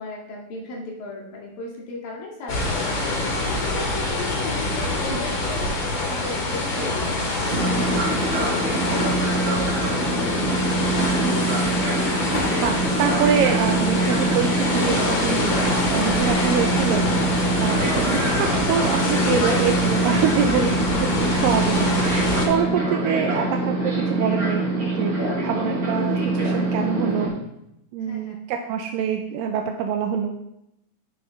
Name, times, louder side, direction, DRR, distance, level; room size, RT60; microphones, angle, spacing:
voice 1, 0.0-9.1 11.6-11.7 22.5-22.8 26.0-26.1 28.0-28.4, left 2 dB, 80° left, -3 dB, 3.6 m, -36 dB
sound 1, 2.5-22.5, left 2 dB, 40° left, 2.2 m, -25 dB
Fixed-wing aircraft airplane, 7.5-27.3, right 2 dB, 45° right, 4.3 m, -24 dB
sound 2, 10.6-13.1 13.5-14.4 15.3-15.6 16.0-16.7, left 1 dB, 60° left, 0.5 m, -39 dB
voice 2, 10.9-11.3 12.6-17.1 17.6-20.7 21.2-25.1 25.4-27.3 27.9-30.3, right 7 dB, 85° right, 4 dB, 2.4 m, -25 dB
17.5 x 6.6 x 3.4 m, 0.81 s
omnidirectional pair, 4.0 m